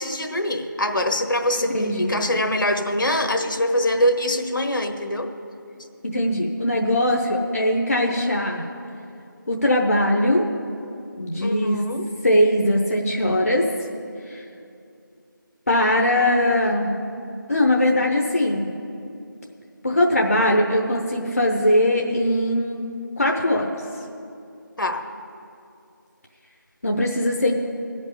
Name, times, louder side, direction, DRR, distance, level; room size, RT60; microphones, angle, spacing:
voice 1, 0.0-5.3 11.4-12.1 24.8-25.0, left 1 dB, 70° left, 5 dB, 1.3 m, -24 dB
voice 2, 1.6-2.2 6.0-8.6 9.5-10.4 11.1-11.8 12.2-13.6 15.7-16.9 17.5-18.7 19.8-22.8 23.2-23.7 26.8-27.5, left 1 dB, 45° left, 0 dB, 0.9 m, -20 dB
16.0 x 5.3 x 9.6 m, 2.6 s
figure-of-eight pair, 175°, 11 cm